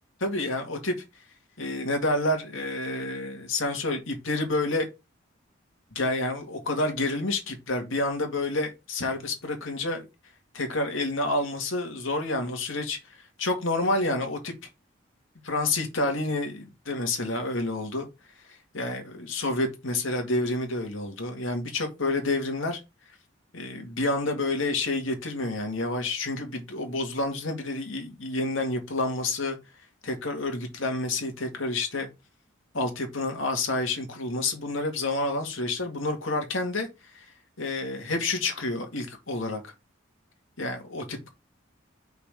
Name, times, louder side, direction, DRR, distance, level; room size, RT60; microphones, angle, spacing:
voice 1, 0.2-0.9 1.6-4.9 5.9-10.1 10.5-13.0 13.4-14.5 15.4-18.1 18.7-22.8 23.5-29.6 30.0-32.1 32.7-36.9 37.6-39.7 40.6-41.3, left 2 dB, 80° left, 2.1 m, -29 dB
5.7 x 4.1 x 5.3 m
head